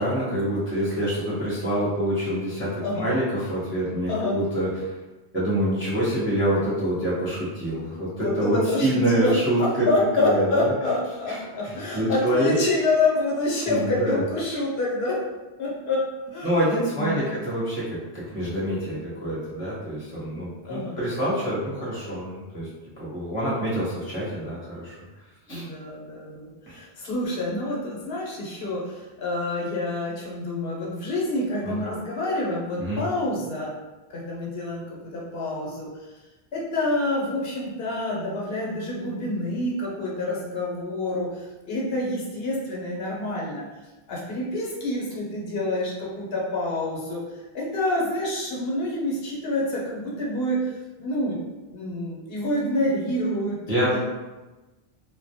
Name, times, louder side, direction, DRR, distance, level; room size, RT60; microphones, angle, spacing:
voice 1, 0.0-4.9 5.3-9.9 10.2-10.7 11.3-12.5 13.7-14.2 16.4-22.7 23.0-25.0 25.5-25.7 26.7-26.8 31.6-31.9 32.8-33.0 53.7-54.0, right 1 dB, 15° right, -9 dB, 0.4 m, -26 dB
voice 2, 8.2-15.2 15.6-16.5 17.0-17.4 20.6-21.0 25.5-33.7 34.1-34.8 35.1-35.9 36.5-43.6 44.1-47.2 47.5-50.7 51.0-51.4 51.7-54.0, left 2 dB, 75° left, -4 dB, 0.9 m, -27 dB
2.1 x 2.1 x 2.6 m, 1.1 s
omnidirectional pair, 1.0 m